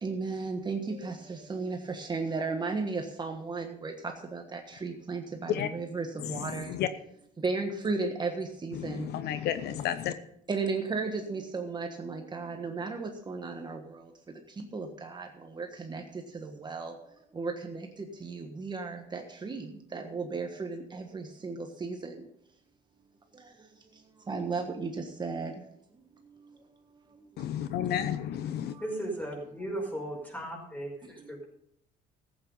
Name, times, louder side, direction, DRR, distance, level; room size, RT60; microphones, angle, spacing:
voice 1, 0.0-3.9 4.3-6.7 7.4-9.1 10.5-13.8 14.7-15.3 15.6-16.0 16.6-16.9 17.4-17.8 18.2-19.6 19.9-22.1 24.3-24.9 25.2-25.5, right 4 dB, 25° right, 4 dB, 1.4 m, -34 dB
voice 2, 6.2-6.9 8.7-10.1 27.4-28.8, left 10 dB, 75° left, 12 dB, 0.9 m, -32 dB
voice 3, 28.8-31.5, right 1 dB, 10° left, 0 dB, 5.3 m, -36 dB
15.0 x 8.8 x 5.5 m, 0.70 s
cardioid pair, 110°, 17 cm